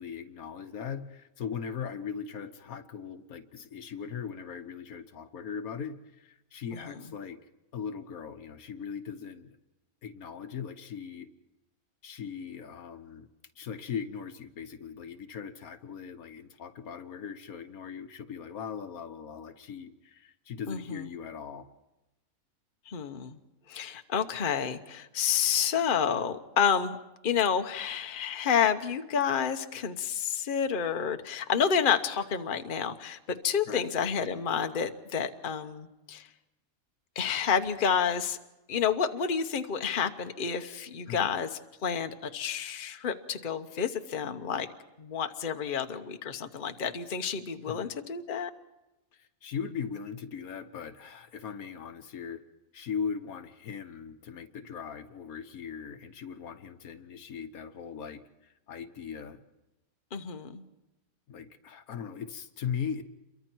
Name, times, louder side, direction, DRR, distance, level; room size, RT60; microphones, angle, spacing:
voice 1, 0.0-7.4 7.7-9.6 10.0-11.3 12.0-13.3 13.6-21.7 33.7-33.9 41.1-41.4 47.7-48.0 49.1-52.4 52.7-59.4 61.3-63.0, left 7 dB, 80° left, 8 dB, 1.5 m, -39 dB
voice 2, 20.7-21.0 22.9-23.4 23.7-27.0 27.2-36.2 37.2-38.4 38.7-41.5 41.8-44.7 45.0-48.5 60.1-60.6, left 7 dB, 40° left, 7 dB, 1.0 m, -29 dB
28.5 x 23.0 x 4.5 m, 1.0 s
omnidirectional pair, 1.5 m